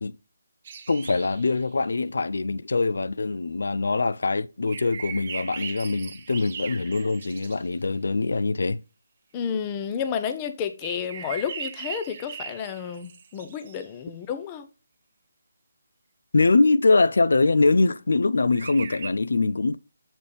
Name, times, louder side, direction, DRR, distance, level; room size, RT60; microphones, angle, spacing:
sound 1, 0.6-1.6 4.7-7.7 10.8-13.9 18.5-19.1, right 7 dB, 35° right, 0.8 m, -39 dB
voice 1, 0.9-8.8 16.3-19.8, left 3 dB, 75° left, 0.3 m, -23 dB
voice 2, 9.3-14.7, left 7 dB, 20° left, 0.6 m, -31 dB
6.9 x 4.0 x 3.4 m
hypercardioid pair, 165°, 0 cm